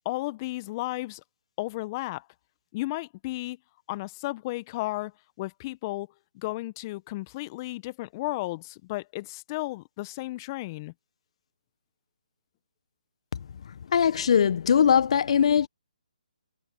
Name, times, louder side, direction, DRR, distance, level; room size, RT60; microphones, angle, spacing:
voice 1, 0.0-1.2 1.6-2.3 2.7-3.6 3.9-5.1 5.4-6.1 6.3-10.9, left 19 dB, 25° left, 1.4 m, -33 dB
voice 2, 13.9-15.7, left 8 dB, 50° left, 1.4 m, -21 dB
figure-of-eight pair, 145°, 4 cm